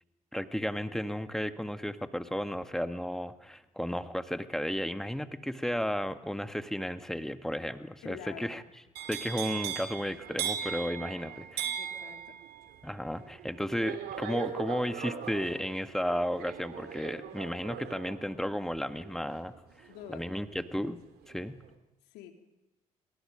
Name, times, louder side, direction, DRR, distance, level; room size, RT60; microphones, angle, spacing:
voice 1, 0.3-8.6 9.1-11.6 12.8-21.0 21.3-21.6, equal, ahead, 9 dB, 1.9 m, -34 dB
voice 2, 8.0-8.6 11.2-11.4 11.8-12.4 19.9-20.3 22.1-22.3, left 10 dB, 65° left, 4 dB, 3.2 m, -47 dB
sound 1, 8.9-20.9 21.2-21.7, right 9 dB, 60° right, 3.0 m, -39 dB
28.5 x 26.0 x 5.2 m, 0.99 s
figure-of-eight pair, 45°, 18 cm